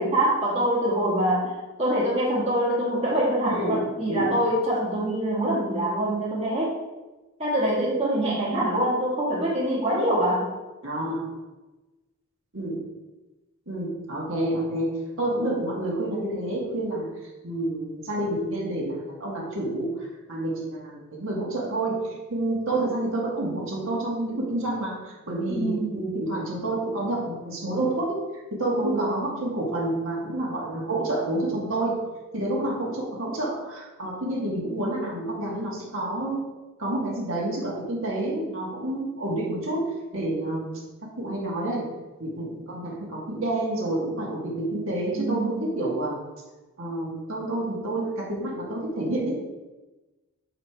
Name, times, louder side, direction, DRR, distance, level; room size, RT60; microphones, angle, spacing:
voice 1, 0.0-6.8 7.4-10.5 25.5-26.0 28.8-29.1 45.1-45.6, right 1 dB, 25° right, -6 dB, 1.6 m, -25 dB
voice 2, 3.5-3.8 4.1-4.3 10.8-11.3 12.5-12.8 13.7-17.1 17.4-22.0 22.3-28.2 28.5-32.0 32.3-36.4 36.8-40.8 41.2-41.9 42.2-46.2 46.8-49.4, right 1 dB, 60° right, -3 dB, 1.8 m, -29 dB
6.7 x 4.8 x 4.6 m, 1.1 s
head